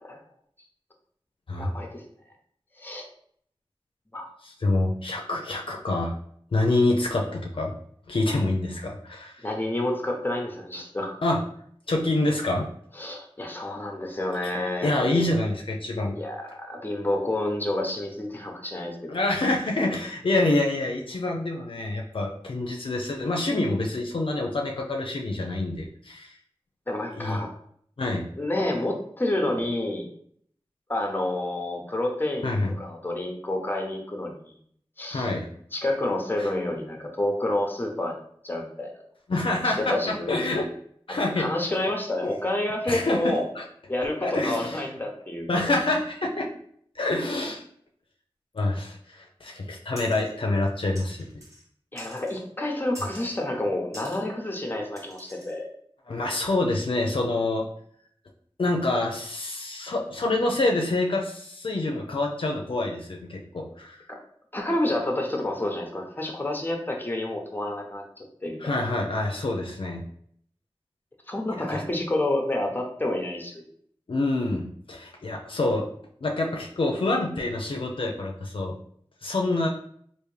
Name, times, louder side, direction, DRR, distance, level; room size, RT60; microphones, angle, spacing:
voice 1, 1.6-2.0 2.8-3.1 4.1-4.3 9.4-11.2 12.9-15.4 16.1-19.2 26.9-27.5 28.4-30.1 30.9-34.4 35.0-35.3 35.7-38.2 38.4-38.9 39.6-40.4 41.1-43.4 43.9-45.7 51.9-55.7 64.1-64.2 64.5-68.7 71.3-73.6, left 1 dB, 20° left, 2 dB, 0.8 m, -29 dB
voice 2, 4.4-6.1 6.5-7.8 8.1-9.4 11.2-11.4 11.9-12.6 14.8-16.2 19.1-26.3 27.2-27.4 28.0-28.2 32.4-32.7 35.1-35.5 36.4-36.5 39.3-39.9 40.3-40.7 41.1-41.8 42.2-42.3 42.9-43.2 43.6-43.7 44.0-44.8 45.5-46.5 47.0-47.6 48.5-51.3 56.1-57.7 58.6-64.0 68.6-70.0 71.7-71.8 74.1-75.8 76.2-78.7 79.2-79.7, left 2 dB, 65° left, 0 dB, 0.5 m, -26 dB
sound 1, 50.0-50.3 50.9-51.6 52.0-52.4 52.9-53.4 53.9-54.2 55.0-55.6, equal, 35° right, 1.2 m, -45 dB
3.4 x 2.5 x 3.2 m, 0.64 s
wide cardioid pair, 45°, 10 cm